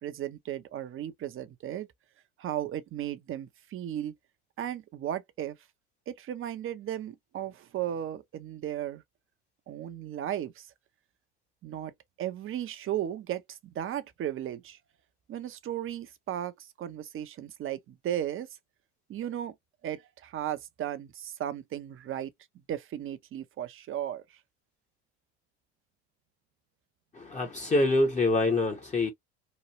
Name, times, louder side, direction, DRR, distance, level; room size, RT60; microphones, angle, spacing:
voice 1, 0.0-1.9 2.4-4.1 4.6-5.6 6.1-9.0 9.7-10.7 11.6-11.9 12.2-14.8 15.3-18.5 19.1-19.5 19.8-22.3 22.7-24.4, right 11 dB, 40° right, 0.7 m, -35 dB
voice 2, 27.1-29.1, left 2 dB, 20° left, 0.9 m, -25 dB
3.1 x 2.2 x 2.9 m
hypercardioid pair, 80°, 34 cm